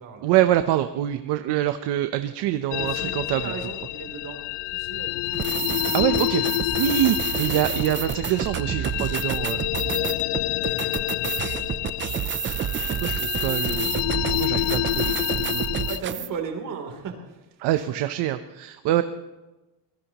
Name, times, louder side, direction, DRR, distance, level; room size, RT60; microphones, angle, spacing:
voice 1, 0.2-3.5 5.9-6.4 6.8-9.6 13.0-13.9 14.3-15.7 17.6-19.0, right 12 dB, 70° right, 9 dB, 0.9 m, -25 dB
sound 1, 2.7-16.0, left 19 dB, 75° left, 0.5 m, -28 dB
voice 2, 2.8-4.4 4.7-5.7 10.4-11.7 13.1-15.0 15.9-17.9 18.8-19.0, right 6 dB, 50° right, 3 dB, 3.3 m, -38 dB
sound 2, 5.3-16.3, right 9 dB, 30° right, 0.5 m, -29 dB
25.5 x 19.0 x 3.0 m, 1.1 s
cardioid pair, 165°, 42 cm